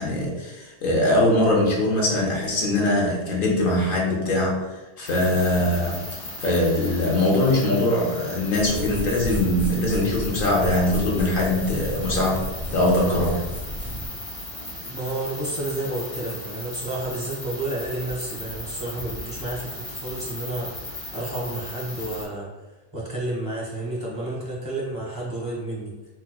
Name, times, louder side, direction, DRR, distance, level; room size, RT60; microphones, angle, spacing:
voice 1, 0.0-4.7 5.0-13.4, left 1 dB, 60° left, -2 dB, 0.8 m, -22 dB
sound 1, 5.1-22.3, left 1 dB, 35° left, 0.9 m, -37 dB
sound 2, 8.5-14.1, equal, ahead, 0.7 m, -32 dB
voice 2, 14.8-22.6 22.9-25.9, right 2 dB, 35° right, -5 dB, 0.8 m, -31 dB
4.5 x 2.1 x 2.2 m, 1.1 s
omnidirectional pair, 1.1 m